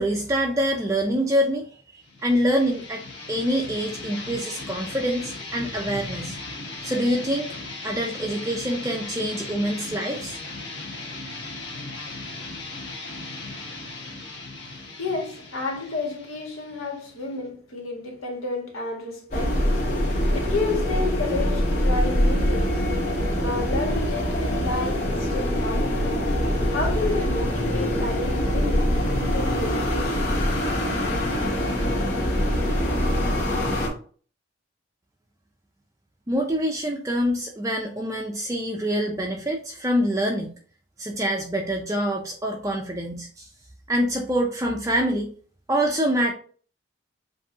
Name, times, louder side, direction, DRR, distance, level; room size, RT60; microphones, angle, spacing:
voice 1, 0.0-1.8 2.2-3.0 3.3-6.4 6.8-7.5 7.8-10.4 36.3-40.5 41.0-43.5 43.9-45.3 45.7-46.3, equal, 15° right, 0.4 m, -25 dB
sound 1, 2.0-17.4, left 3 dB, 55° left, 1.3 m, -37 dB
voice 2, 14.6-22.8 23.4-26.2 26.7-30.6, left 3 dB, 90° left, 1.7 m, -31 dB
sound 2, 19.3-33.9, equal, 35° left, 1.6 m, -24 dB
7.2 x 2.7 x 2.7 m
head